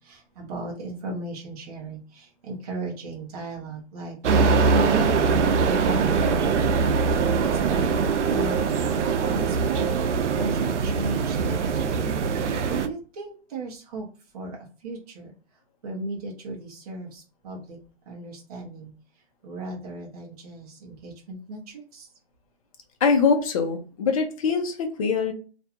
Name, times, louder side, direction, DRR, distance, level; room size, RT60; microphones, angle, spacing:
voice 1, 0.1-2.0 2.5-4.2 4.7-6.5 7.7-8.6 9.2-10.0 10.4-12.1 12.7-14.0 14.3-14.6 14.8-15.3 15.8-17.8 18.1-18.9 19.4-21.6 21.9-22.1, right 2 dB, 35° right, -1 dB, 0.6 m, -35 dB
sound 1, 4.2-12.9, right 5 dB, 90° right, 0.5 m, -22 dB
voice 2, 23.0-25.3, left 5 dB, 30° left, 4 dB, 0.5 m, -23 dB
2.4 x 2.2 x 2.8 m, 0.36 s
hypercardioid pair, 145°, 34 cm